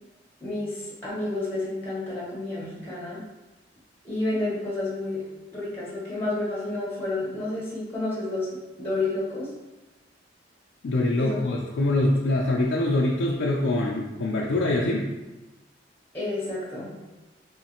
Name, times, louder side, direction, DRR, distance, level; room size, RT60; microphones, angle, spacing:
voice 1, 0.4-3.2 4.0-5.2 5.5-8.5 8.8-9.5 11.2-11.4 16.1-16.9, left 2 dB, 10° left, -6 dB, 0.9 m, -30 dB
voice 2, 10.8-15.1, left 2 dB, 80° left, -3 dB, 0.4 m, -24 dB
3.2 x 3.1 x 2.9 m, 1.1 s
head